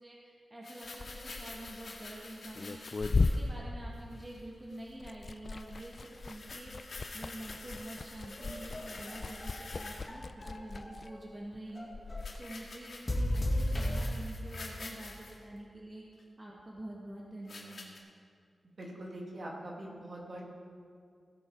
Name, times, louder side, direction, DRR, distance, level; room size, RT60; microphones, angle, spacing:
voice 1, 0.0-2.8 3.1-16.0 16.4-17.9, right 1 dB, 25° right, -4 dB, 1.7 m, -47 dB
sound 1, 0.6-3.5 4.0-4.4 4.7-4.9 5.2-5.3 5.6-10.1 12.2-15.4 16.2-16.3 17.5-18.0, left 3 dB, 70° left, 1.8 m, -48 dB
Liquid, 0.8-4.5 4.8-12.4, left 3 dB, 45° left, 0.4 m, -37 dB
sound 2, 8.2-11.2 11.7-12.3 13.1-14.0, left 1 dB, 25° left, 1.7 m, -35 dB
voice 2, 18.8-20.4, right 1 dB, 50° right, -2 dB, 2.2 m, -43 dB
17.0 x 7.0 x 4.6 m, 2.4 s
wide cardioid pair, 100°, 0 cm